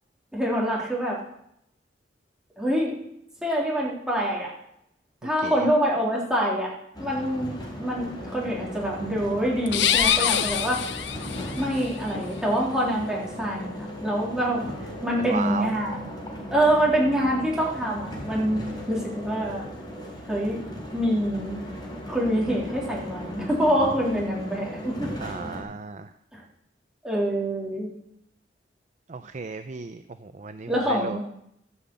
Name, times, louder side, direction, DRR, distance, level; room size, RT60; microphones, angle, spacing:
voice 1, 0.3-1.2 2.6-2.9 3.4-4.5 5.2-6.7 7.0-11.0 11.6-14.7 15.0-16.0 16.5-19.6 20.3-20.6 20.9-21.6 22.1-25.1 26.3-26.4 27.0-27.9 30.7-31.2, equal, 5° right, -4 dB, 3.5 m, -25 dB
voice 2, 5.2-5.7 15.2-15.8 18.6-18.8 25.2-26.1 29.1-31.2, right 4 dB, 45° right, 9 dB, 0.5 m, -35 dB
sound 1, 6.9-25.6, equal, 25° left, 3.7 m, -37 dB
sound 2, 9.7-11.7, left 9 dB, 80° left, 0.7 m, -24 dB
14.0 x 5.8 x 7.8 m, 0.76 s
head